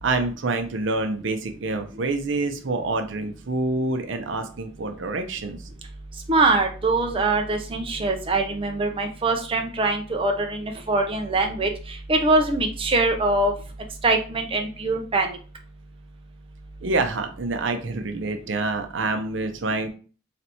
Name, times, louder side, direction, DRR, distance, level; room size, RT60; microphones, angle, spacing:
voice 1, 0.0-5.6 16.8-19.9, right 3 dB, 70° right, 6 dB, 0.6 m, -27 dB
voice 2, 6.3-11.7 12.1-13.5 14.0-15.4, right 2 dB, 30° right, 3 dB, 0.6 m, -23 dB
3.3 x 2.9 x 4.1 m, 0.38 s
head